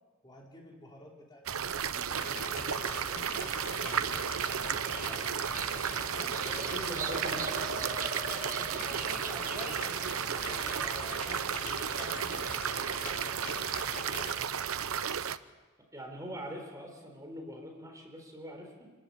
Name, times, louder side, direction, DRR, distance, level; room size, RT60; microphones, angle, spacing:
voice 1, 0.2-5.3 6.0-6.4 8.5-14.3, left 1 dB, 20° left, -1 dB, 3.7 m, -50 dB
sound 1, 1.5-15.4, right 8 dB, 90° right, 0.8 m, -34 dB
sound 2, 2.1-14.3, left 3 dB, 50° left, 4.7 m, -43 dB
Bird vocalization bird call bird song, 4.3-10.7, right 4 dB, 40° right, 1.4 m, -42 dB
voice 2, 6.4-7.8 15.9-18.9, equal, 15° right, 2 dB, 4.0 m, -43 dB
26.5 x 14.5 x 9.8 m, 1.3 s
head